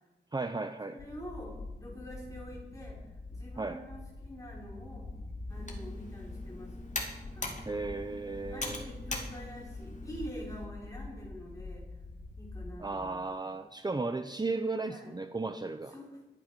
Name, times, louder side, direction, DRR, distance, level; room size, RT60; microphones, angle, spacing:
voice 1, 0.3-1.0 3.6-3.8 7.7-8.9 12.8-15.9, right 3 dB, 25° right, 8 dB, 0.7 m, -35 dB
voice 2, 0.9-5.1 5.5-6.7 7.3-7.6 8.5-11.8 12.4-13.2 14.9-15.1 15.9-16.2, equal, 20° left, -4 dB, 5.3 m, -46 dB
sound 1, 1.0-12.7, left 2 dB, 80° left, 2.3 m, -45 dB
Computer keyboard, 5.5-10.7, left 2 dB, 45° left, 2.7 m, -42 dB
23.5 x 9.4 x 5.3 m, 1.1 s
wide cardioid pair, 125°, 18 cm